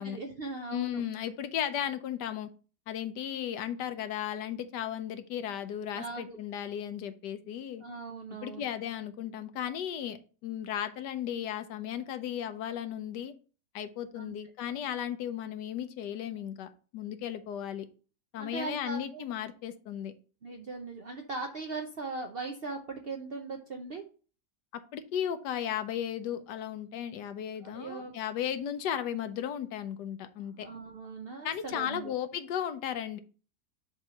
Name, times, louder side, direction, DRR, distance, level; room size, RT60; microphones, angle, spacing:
voice 1, 0.0-1.0 5.9-6.4 7.8-8.7 14.2-14.4 18.4-19.3 20.4-24.0 27.6-28.1 30.5-32.2, right 3 dB, 60° right, 4 dB, 0.6 m, -39 dB
voice 2, 0.7-2.5 2.9-7.8 8.4-13.3 13.7-17.9 18.3-20.1 24.7-30.7 31.4-33.2, left 10 dB, 85° left, 9 dB, 1.3 m, -35 dB
6.8 x 3.0 x 5.6 m, 0.38 s
omnidirectional pair, 1.8 m